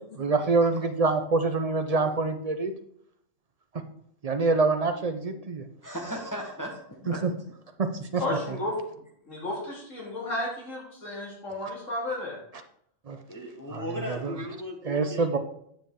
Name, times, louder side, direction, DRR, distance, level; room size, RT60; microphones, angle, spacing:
voice 1, 0.2-2.7 3.7-3.8 4.2-5.6 7.1-7.3 7.8-8.2 13.1-13.2 13.7-14.4 14.8-15.4, right 3 dB, 50° right, 7 dB, 0.4 m, -26 dB
voice 2, 5.8-7.2 13.3-15.4, equal, 15° left, 0 dB, 1.2 m, -37 dB
voice 3, 8.2-8.8 9.3-12.4, left 1 dB, 70° left, -3 dB, 2.7 m, -33 dB
9.1 x 7.2 x 3.7 m, 0.70 s
omnidirectional pair, 1.4 m